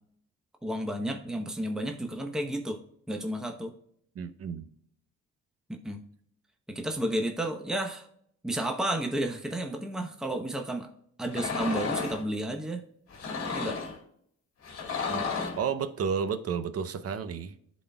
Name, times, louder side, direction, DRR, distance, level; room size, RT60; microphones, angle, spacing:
voice 1, 0.6-2.8 3.1-3.7 5.7-6.0 6.7-8.1 8.4-10.9 11.2-12.8 13.5-13.8, right 1 dB, ahead, 3 dB, 0.9 m, -32 dB
voice 2, 4.2-4.6 15.1-15.2 15.6-17.5, right 6 dB, 55° right, 11 dB, 0.7 m, -31 dB
sound 1, 11.3-12.2 13.1-14.0 14.6-15.7, left 5 dB, 50° left, 1.7 m, -32 dB
11.0 x 4.2 x 2.3 m, 0.68 s
cardioid pair, 90°, 30 cm